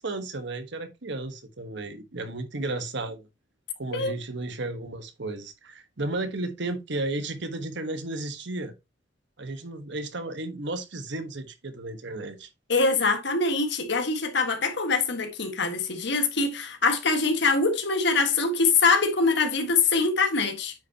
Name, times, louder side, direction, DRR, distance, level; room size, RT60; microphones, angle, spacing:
voice 1, 0.0-3.3 3.8-8.7 9.4-12.5, right 2 dB, 65° right, 1.2 m, -33 dB
voice 2, 12.7-20.7, left 4 dB, 65° left, 1.6 m, -24 dB
9.0 x 5.3 x 2.8 m
head